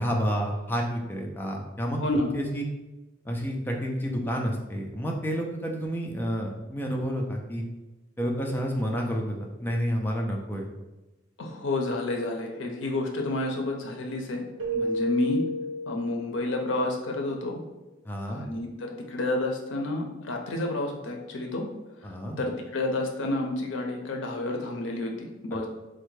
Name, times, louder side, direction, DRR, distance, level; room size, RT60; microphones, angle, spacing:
voice 1, 0.0-2.6 3.3-7.6 8.2-10.7 18.0-18.4 22.0-22.4, equal, 10° left, 1 dB, 0.4 m, -30 dB
voice 2, 11.4-14.5 14.7-15.4 15.9-17.6 18.3-21.7 22.4-25.7, left 2 dB, 75° left, 2 dB, 0.5 m, -30 dB
Keyboard (musical), 14.6-16.6, equal, 70° right, 0.8 m, -31 dB
3.3 x 2.1 x 3.1 m, 1.1 s
head